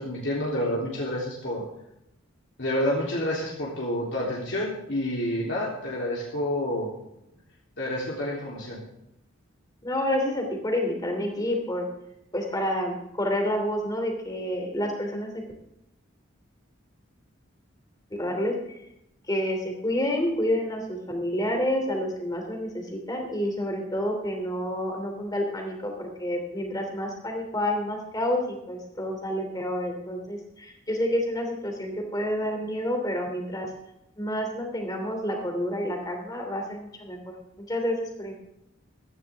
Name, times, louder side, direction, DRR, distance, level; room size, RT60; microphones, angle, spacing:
voice 1, 0.0-1.6 2.6-6.9 7.8-8.8, left 1 dB, 60° left, -5 dB, 3.4 m, -29 dB
voice 2, 9.8-11.9 12.3-15.3 18.2-18.5 19.3-33.7 34.2-37.2 37.7-38.3, equal, 20° left, 3 dB, 3.0 m, -29 dB
16.0 x 14.0 x 3.6 m, 0.84 s
head